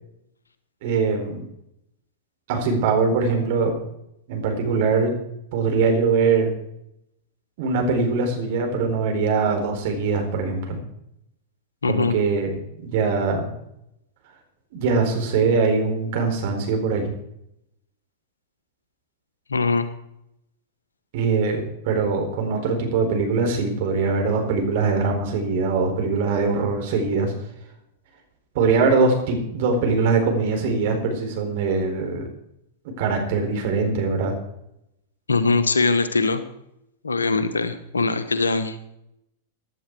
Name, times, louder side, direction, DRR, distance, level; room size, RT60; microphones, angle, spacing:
voice 1, 0.8-1.4 2.5-3.7 4.3-5.1 5.5-6.5 7.6-10.8 11.9-12.6 12.8-13.5 14.7-17.1 21.1-27.3 28.5-32.2 33.0-34.3, right 4 dB, 55° right, 3 dB, 4.3 m, -22 dB
voice 2, 11.8-12.1 19.5-19.9 35.3-36.4 37.0-38.8, left 3 dB, 80° left, 11 dB, 1.3 m, -21 dB
16.0 x 10.5 x 4.8 m, 0.79 s
figure-of-eight pair, 95°, 0 cm